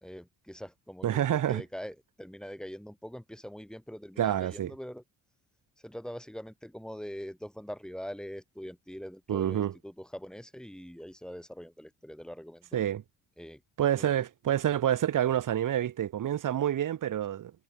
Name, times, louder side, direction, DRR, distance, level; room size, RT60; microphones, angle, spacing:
voice 1, 0.0-5.0 5.8-12.8 13.4-13.6 14.0-14.2, equal, ahead, 1.9 m, -43 dB
voice 2, 1.0-1.6 4.2-4.7 9.3-9.7 12.7-13.0 13.8-17.5, right 11 dB, 45° right, 0.9 m, -28 dB
supercardioid pair, 60°, 44 cm